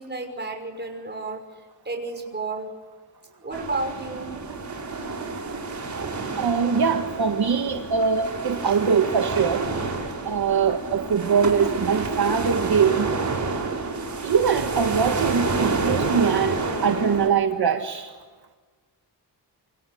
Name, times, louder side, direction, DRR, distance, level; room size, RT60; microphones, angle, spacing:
voice 1, 0.0-1.4 1.9-2.7 3.4-4.3 8.6-8.7, right 3 dB, 25° right, 4 dB, 5.9 m, -31 dB
sound 1, 3.5-17.3, right 3 dB, 40° right, 5.5 m, -29 dB
voice 2, 6.4-9.6 10.3-13.1 14.2-18.1, right 6 dB, 60° right, 4 dB, 1.8 m, -22 dB
28.0 x 25.5 x 7.9 m, 1.4 s
wide cardioid pair, 155°, 43 cm